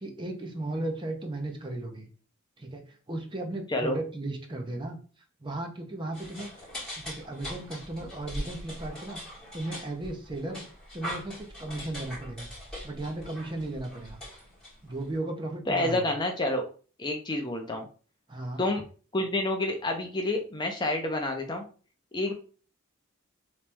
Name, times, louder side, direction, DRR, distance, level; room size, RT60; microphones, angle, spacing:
voice 1, 0.0-2.1 2.6-5.0 5.4-6.5 7.0-9.2 9.5-10.6 10.9-12.5 12.8-14.2 14.8-16.0 18.3-18.6, right 2 dB, 25° right, 3 dB, 0.6 m, -35 dB
sound 1, 6.1-15.1, equal, 5° left, 1.9 m, -41 dB
voice 2, 15.7-16.6 17.0-17.9 18.6-18.8 19.1-21.6 22.1-22.3, left 2 dB, 20° left, 3 dB, 0.5 m, -28 dB
3.1 x 3.0 x 3.4 m, 0.38 s
head